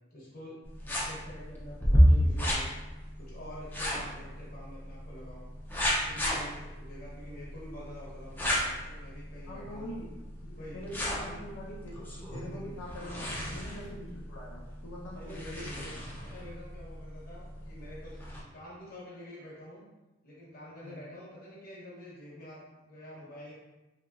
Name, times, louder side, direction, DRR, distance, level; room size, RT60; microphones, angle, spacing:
voice 1, 0.1-2.7 3.2-5.5 6.0-10.0 10.6-10.8 11.1-11.4 12.4-12.8 13.4-13.7 15.2-15.9 16.3-18.2 18.5-19.8 20.2-23.5, left 1 dB, 50° left, -6 dB, 0.9 m, -47 dB
sound 1, 0.6-18.4, equal, 10° left, 0.4 m, -32 dB
voice 2, 9.5-10.1 10.4-12.0 12.3-15.9 20.8-21.0, equal, 75° left, -4 dB, 0.6 m, -44 dB
3.0 x 2.8 x 2.4 m, 1.1 s
head